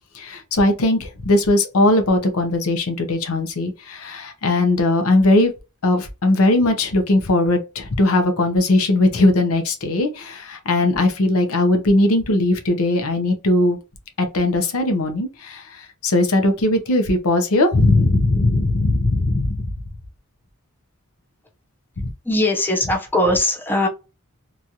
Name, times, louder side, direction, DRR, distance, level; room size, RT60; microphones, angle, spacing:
voice 1, 0.1-5.5 5.8-13.8 14.2-19.6 22.0-22.1, left 2 dB, 70° left, 0.7 m, -19 dB
voice 2, 22.2-23.9, left 1 dB, 10° left, 0.6 m, -20 dB
3.0 x 2.4 x 2.7 m
head